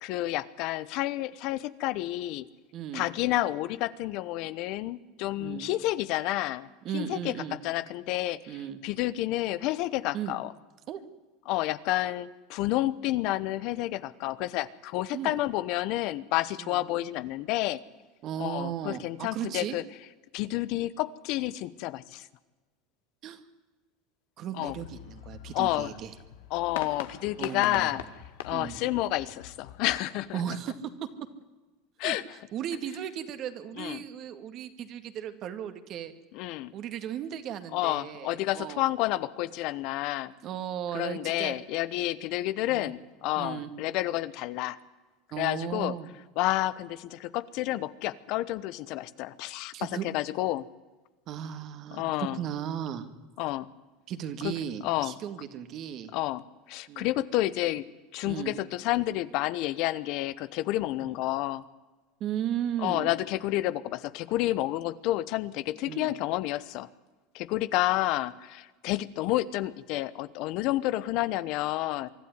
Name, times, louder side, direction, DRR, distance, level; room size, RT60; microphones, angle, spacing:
voice 1, 0.0-2.5 2.9-6.7 6.9-7.3 7.6-8.5 8.8-10.5 11.5-17.8 18.4-19.8 20.3-22.3 24.6-24.7 25.5-25.9 26.5-28.0 28.4-30.4 32.0-32.2 33.8-34.0 36.3-36.7 37.7-40.3 40.9-44.8 45.4-45.9 46.4-50.7 51.9-52.4 53.4-53.7 54.4-54.5 54.8-55.1 56.1-56.4 56.7-57.9 58.1-61.6 62.8-66.9 67.3-72.1, left 16 dB, 60° left, 16 dB, 0.9 m, -30 dB
voice 2, 2.7-3.1 5.4-5.7 6.8-7.6 8.5-8.8 10.1-10.4 10.9-11.0 15.1-15.4 16.6-16.9 18.2-19.8 23.2-23.4 24.4-26.1 27.4-28.0 28.5-28.8 30.3-31.1 32.0-32.2 32.5-36.1 36.7-38.9 40.4-41.6 42.7-42.9 43.4-43.7 45.3-46.1 49.7-50.1 51.3-53.1 54.1-56.1 56.9-57.1 58.2-58.5 61.0-61.1 62.2-63.1 65.9-66.1, right 9 dB, 50° right, 9 dB, 2.1 m, -36 dB
sound 1, 24.7-30.0, left 11 dB, 85° left, 1.6 m, -42 dB
24.5 x 12.5 x 9.7 m, 1.2 s
supercardioid pair, 110°, 0 cm